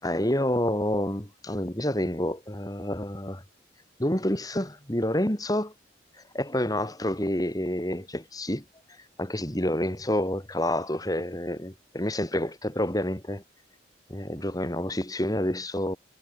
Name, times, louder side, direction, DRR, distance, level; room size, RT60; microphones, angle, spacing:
voice 1, 0.0-3.4 4.0-5.7 6.3-8.6 9.2-13.4 14.1-16.0, left 1 dB, 20° left, 3.6 m, -28 dB
head